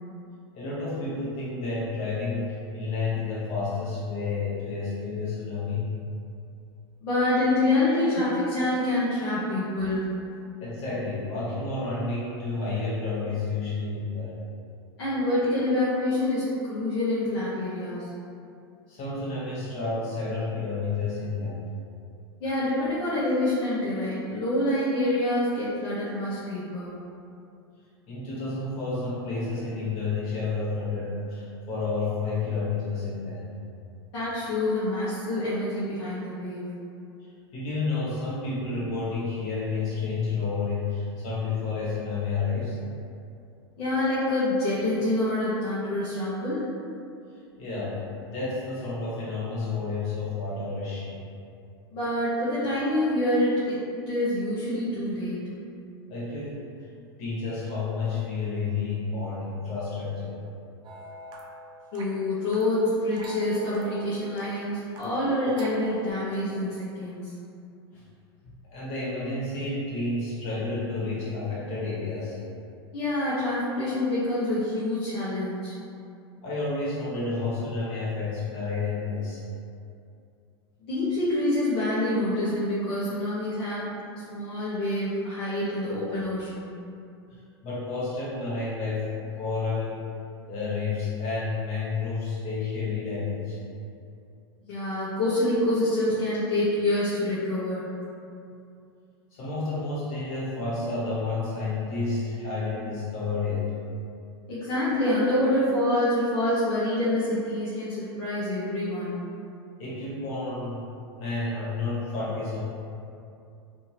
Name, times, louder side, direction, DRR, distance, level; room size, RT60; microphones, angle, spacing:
voice 1, 0.5-5.9 10.6-14.3 18.9-21.6 28.1-33.4 37.5-42.8 47.6-51.2 56.1-56.6 57.2-60.4 67.9-68.0 68.6-72.4 76.4-79.4 87.3-90.1 90.5-93.6 99.3-103.7 109.8-110.9 111.2-112.6, left 3 dB, 50° left, -8 dB, 1.3 m, -30 dB
voice 2, 7.0-10.1 15.0-18.1 22.4-27.0 34.1-36.7 43.8-46.7 51.9-55.4 61.9-67.3 72.9-75.8 80.8-83.9 84.1-86.7 94.7-97.9 104.5-109.2, left 1 dB, 65° left, -11 dB, 0.9 m, -26 dB
sound 1, 60.8-66.1, right 1 dB, 35° right, 0.5 m, -44 dB
2.8 x 2.7 x 2.7 m, 2.5 s
hypercardioid pair, 100°, 13 cm